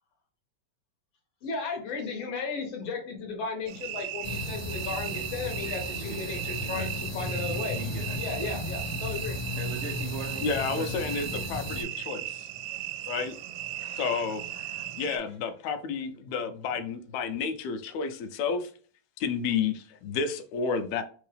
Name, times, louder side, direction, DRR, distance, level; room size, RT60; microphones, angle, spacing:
voice 1, 1.4-7.8 8.2-9.4 13.7-14.2 14.6-14.8, left 4 dB, 65° left, 2.0 m, -35 dB
sound 1, 3.7-15.2, right 14 dB, 85° right, 2.0 m, -37 dB
Room with Buzz Incandescent light bulb, 4.2-11.8, left 2 dB, 25° left, 1.1 m, -35 dB
voice 2, 5.6-6.9 7.5-8.5 9.6-11.1, right 4 dB, 70° right, 1.3 m, -41 dB
voice 3, 10.4-12.5 13.1-13.4 14.0-14.4 15.0-18.7 19.2-21.0, left 5 dB, 80° left, 1.9 m, -31 dB
4.5 x 3.5 x 3.4 m
omnidirectional pair, 3.3 m